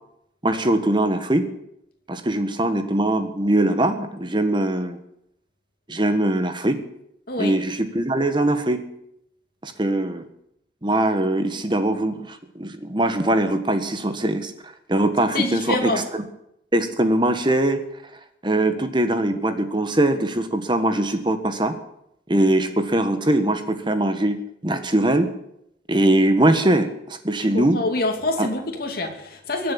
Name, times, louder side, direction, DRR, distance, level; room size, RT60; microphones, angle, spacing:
voice 1, 0.4-1.5 2.1-5.0 5.9-6.8 7.4-8.8 9.6-10.3 10.8-16.2 16.7-17.8 18.4-21.8 22.3-25.3 25.9-27.8 28.4-28.5, right 1 dB, 25° right, 9 dB, 1.4 m, -21 dB
voice 2, 15.3-16.0 27.5-29.7, left 2 dB, 55° left, 3 dB, 2.8 m, -26 dB
21.5 x 7.7 x 8.6 m, 0.78 s
head